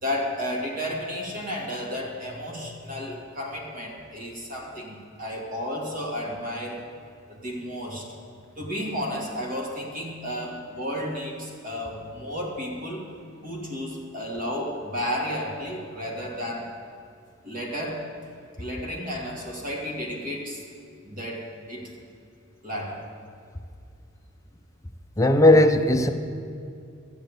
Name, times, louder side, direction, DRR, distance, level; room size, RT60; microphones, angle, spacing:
voice 1, 0.0-6.8 7.3-8.1 8.6-13.1 13.4-16.7 17.4-18.1 18.6-20.6 21.0-21.9 22.6-23.1, equal, 45° right, -1 dB, 2.5 m, -32 dB
voice 2, 25.2-26.1, left 1 dB, 15° left, 6 dB, 0.7 m, -17 dB
13.5 x 7.8 x 9.0 m, 2.4 s
head